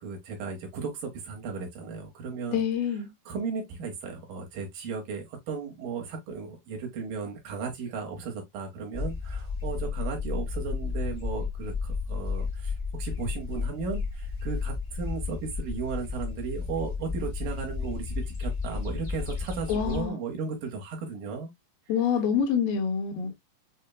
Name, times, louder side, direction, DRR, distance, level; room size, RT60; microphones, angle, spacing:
voice 1, 0.0-2.6 3.3-21.5 23.3-23.4, right 5 dB, 70° right, 2.4 m, -35 dB
voice 2, 2.5-3.1 19.7-20.2 21.9-23.3, left 7 dB, 80° left, 2.4 m, -26 dB
sound 1, 8.9-20.1, left 5 dB, 45° left, 0.6 m, -33 dB
6.4 x 2.1 x 2.2 m
omnidirectional pair, 4.2 m